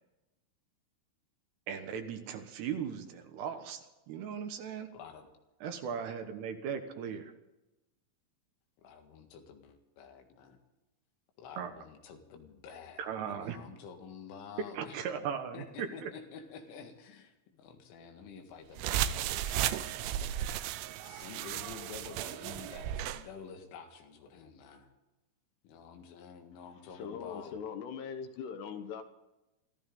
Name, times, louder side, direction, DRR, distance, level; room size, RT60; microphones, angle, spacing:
voice 1, 1.7-4.9 5.6-7.3 11.6-11.7 13.0-13.6 14.7-16.1, right 7 dB, 70° right, 3.1 m, -38 dB
voice 2, 4.9-5.3 8.8-10.6 11.4-15.0 15.5-20.3 21.0-24.9 25.6-27.6, left 6 dB, 90° left, 4.4 m, -50 dB
sound 1, 18.8-23.2, right 11 dB, 90° right, 3.2 m, -34 dB
voice 3, 26.9-29.0, left 7 dB, 70° left, 2.9 m, -40 dB
25.0 x 15.0 x 3.9 m
omnidirectional pair, 5.5 m